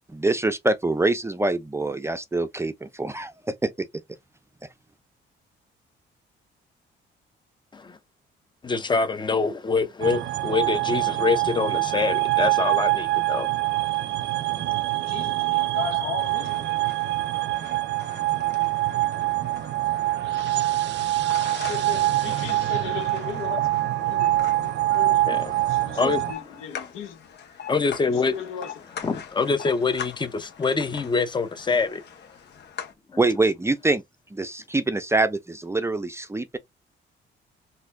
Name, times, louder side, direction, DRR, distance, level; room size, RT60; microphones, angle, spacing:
voice 1, 0.1-3.9 33.2-34.0 34.3-36.6, right 2 dB, 15° right, 0.5 m, -25 dB
voice 2, 8.6-13.5 24.9-25.0 25.3-26.2 26.8-26.9 27.7-28.4 29.0-32.0 33.1-33.2, left 4 dB, 25° left, 0.7 m, -25 dB
sound 1, 10.0-26.3, right 17 dB, 65° right, 0.5 m, -25 dB
voice 3, 15.0-16.8 21.5-25.3 25.7-27.3 28.1-29.0, left 8 dB, 90° left, 0.9 m, -37 dB
sound 2, 16.2-32.9, left 7 dB, 60° left, 0.9 m, -42 dB
4.1 x 2.6 x 2.6 m
cardioid pair, 90°, 20 cm